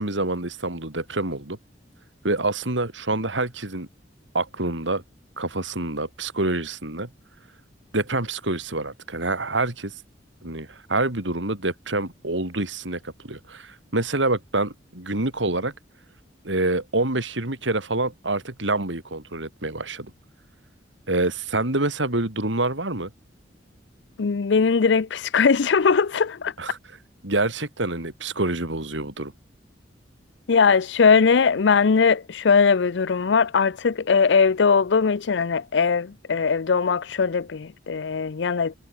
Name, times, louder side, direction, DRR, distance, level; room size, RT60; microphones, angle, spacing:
voice 1, 0.0-1.6 2.2-3.9 4.3-5.0 5.4-7.1 7.9-9.9 10.4-15.7 16.4-20.1 21.1-23.1 26.6-27.0 27.2-29.3, right 2 dB, 80° right, 3.6 m, -26 dB
voice 2, 24.2-26.5 30.5-38.7, left 5 dB, 70° left, 0.5 m, -20 dB
head